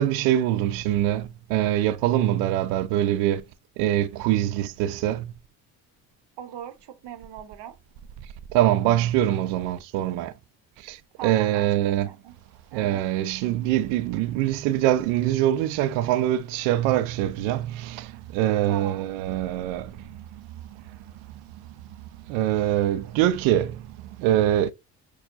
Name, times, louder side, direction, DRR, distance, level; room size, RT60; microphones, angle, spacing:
voice 1, 0.0-3.4 3.8-5.3 8.5-10.3 10.8-12.1 12.7-20.0 22.3-24.7, right 12 dB, 75° right, 0.6 m, -24 dB
voice 2, 6.4-7.7 11.2-12.4 12.7-13.0 18.7-19.1, right 11 dB, 55° right, 0.9 m, -39 dB
6.0 x 2.3 x 2.6 m
hypercardioid pair, 55°, 50 cm